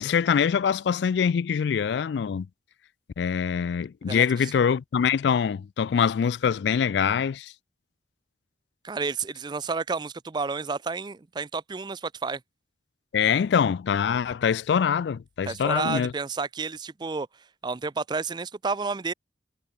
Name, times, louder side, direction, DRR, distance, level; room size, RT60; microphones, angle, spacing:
voice 1, 0.0-2.5 3.2-7.5 13.1-16.1, left 7 dB, 70° left, 0.3 m, -24 dB
voice 2, 4.1-4.5 8.8-12.4 15.4-17.3 17.6-19.1, right 4 dB, 25° right, 0.4 m, -31 dB
head